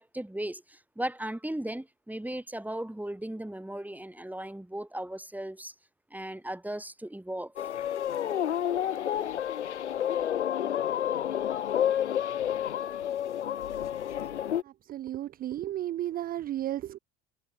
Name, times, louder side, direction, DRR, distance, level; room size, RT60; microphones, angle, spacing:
voice 1, 0.0-5.7 6.1-7.5, right 1 dB, 5° right, 5.9 m, -37 dB
sound 1, 7.6-14.6, left 10 dB, 90° left, 1.5 m, -30 dB
voice 2, 14.9-17.0, right 13 dB, 30° right, 0.3 m, -33 dB
hypercardioid pair, 70°, 34 cm